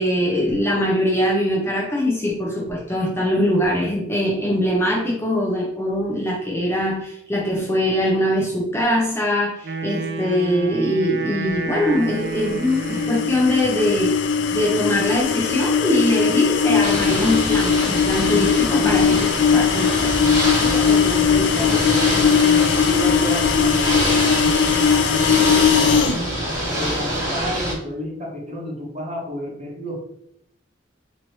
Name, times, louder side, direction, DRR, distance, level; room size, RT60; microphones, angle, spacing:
voice 1, 0.0-20.1, left 1 dB, 15° left, -4 dB, 0.6 m, -22 dB
Wind instrument woodwind instrument, 9.6-13.6, right 4 dB, 60° right, 0.4 m, -30 dB
sound 1, 12.3-26.2, left 7 dB, 70° left, 0.3 m, -19 dB
Ocean / Boat Water vehicle, 16.8-27.7, equal, 20° right, 1.5 m, -25 dB
voice 2, 18.5-19.2 20.5-24.7 25.0-26.3 26.7-30.0, equal, 35° right, -5 dB, 1.4 m, -31 dB
4.1 x 3.0 x 3.1 m, 0.75 s
head